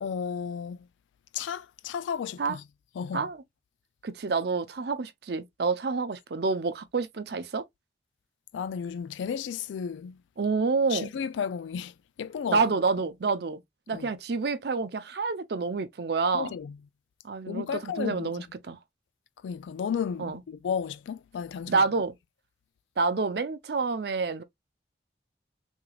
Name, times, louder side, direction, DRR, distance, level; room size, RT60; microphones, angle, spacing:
voice 1, 0.0-0.9 1.3-2.6 3.0-3.3 8.5-10.2 10.9-12.6 13.9-14.1 16.3-16.8 17.5-18.4 19.4-21.8, left 7 dB, 90° left, 0.3 m, -33 dB
voice 2, 4.0-7.6 10.4-11.1 12.5-13.6 13.9-16.5 17.2-18.8 20.2-20.4 21.7-22.1 23.0-24.4, right 4 dB, 60° right, 0.5 m, -28 dB
3.5 x 3.2 x 2.3 m
head